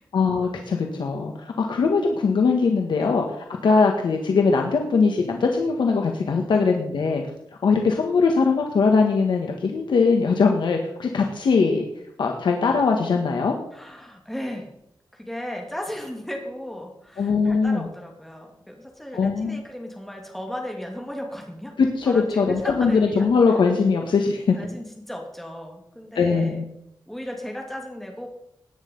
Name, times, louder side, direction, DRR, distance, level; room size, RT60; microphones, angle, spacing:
voice 1, 0.1-3.2 3.6-7.2 7.6-11.8 12.2-13.6 17.2-17.9 19.1-19.6 21.8-24.6 26.2-26.6, left 4 dB, 75° left, 2 dB, 1.7 m, -21 dB
voice 2, 13.7-14.7 15.1-21.8 22.1-23.3 24.6-26.6 27.1-28.3, left 1 dB, 5° left, 1 dB, 2.8 m, -35 dB
17.5 x 10.0 x 5.5 m, 0.79 s
wide cardioid pair, 170°, 8 cm